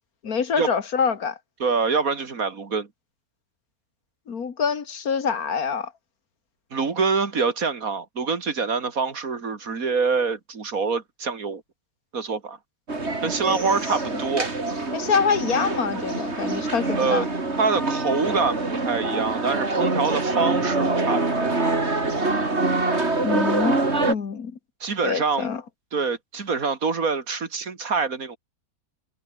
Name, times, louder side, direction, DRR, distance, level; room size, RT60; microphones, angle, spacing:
voice 1, 0.2-1.4 4.3-5.9 13.5-13.7 14.9-17.2 23.2-24.5 25.0-25.6, left 6 dB, 85° left, 2.3 m, -25 dB
voice 2, 1.6-2.9 6.7-11.6 12.1-12.6 13.2-14.5 16.9-17.3 17.6-21.5 24.8-25.5 25.9-28.4, right 5 dB, 75° right, 2.7 m, -25 dB
sound 1, 12.9-24.1, right 3 dB, 50° right, 3.8 m, -25 dB
omnidirectional pair, 1.5 m